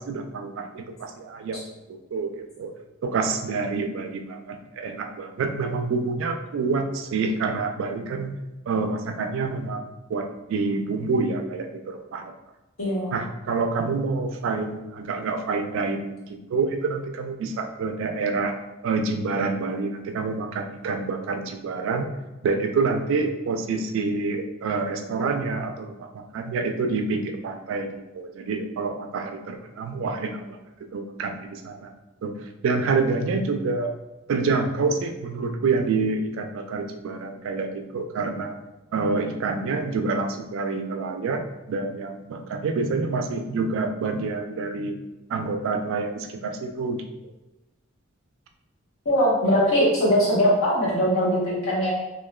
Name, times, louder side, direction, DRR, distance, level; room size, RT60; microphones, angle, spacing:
voice 1, 0.0-1.6 1.9-2.3 2.6-2.7 3.0-8.4 8.7-12.3 13.1-18.5 18.8-22.1 22.4-27.9 28.1-30.6 30.9-31.9 32.2-32.3 32.6-33.9 34.3-38.6 38.9-41.4 41.7-44.9 45.3-47.0, right 4 dB, 65° right, 5 dB, 0.3 m, -27 dB
voice 2, 12.8-13.1 49.0-51.9, equal, 90° left, -5 dB, 1.0 m, -21 dB
2.9 x 2.1 x 2.2 m, 1.0 s
head